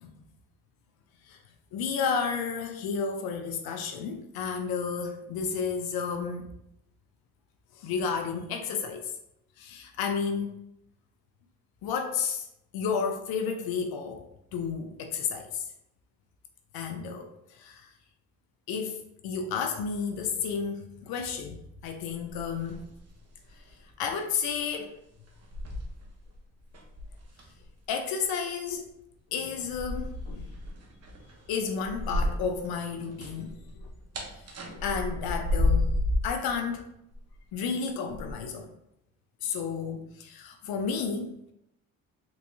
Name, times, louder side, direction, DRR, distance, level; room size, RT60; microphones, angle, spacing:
voice 1, 1.7-6.5 7.7-9.1 9.6-10.6 11.8-12.5 12.7-15.7 16.7-17.9 18.7-22.8 23.6-23.7 24.0-25.0 27.9-28.9 29.3-30.5 31.5-33.9 34.3-35.9 36.2-36.9 37.5-38.7 39.4-41.4, left 6 dB, 80° left, 4 dB, 0.5 m, -32 dB
sound 1, 22.3-23.2 23.5-23.7 24.6-24.7 25.3-26.4 26.7-27.6 29.7-32.7 32.9-36.4 37.1-37.5 38.1-38.3, left 2 dB, 45° right, 0.9 m, -31 dB
3.4 x 3.1 x 2.7 m, 0.79 s
supercardioid pair, 60°, 36 cm